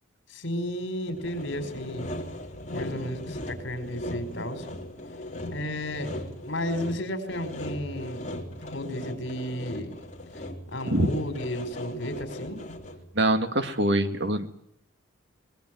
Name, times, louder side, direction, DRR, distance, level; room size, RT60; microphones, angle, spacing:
voice 1, 0.3-2.1 2.7-4.7 5.5-6.1 6.4-8.3 8.6-10.0 10.7-12.6, left 1 dB, 60° left, 9 dB, 5.0 m, -33 dB
Sawing, 1.1-13.1, left 1 dB, 35° left, 3.5 m, -38 dB
voice 2, 13.2-14.5, right 1 dB, 55° right, 9 dB, 2.1 m, -24 dB
25.0 x 21.0 x 9.5 m, 0.71 s
head